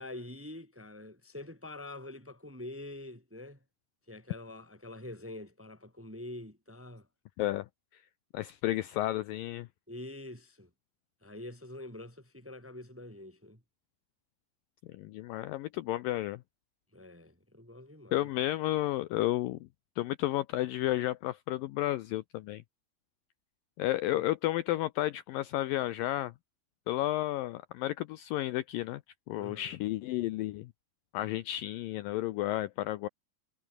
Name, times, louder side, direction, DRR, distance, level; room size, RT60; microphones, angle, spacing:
voice 1, 0.0-3.6 4.1-7.1 9.9-10.7 11.2-13.6 16.9-18.3 29.4-29.8, left 1 dB, 5° right, 1.9 m, -45 dB
voice 2, 7.4-7.7 7.9-8.0 8.3-9.7 14.9-16.4 18.1-19.7 20.0-22.6 23.8-26.3 26.9-29.0 29.3-30.7 31.1-33.1, left 15 dB, 75° left, 2.1 m, -32 dB
omnidirectional pair, 4.6 m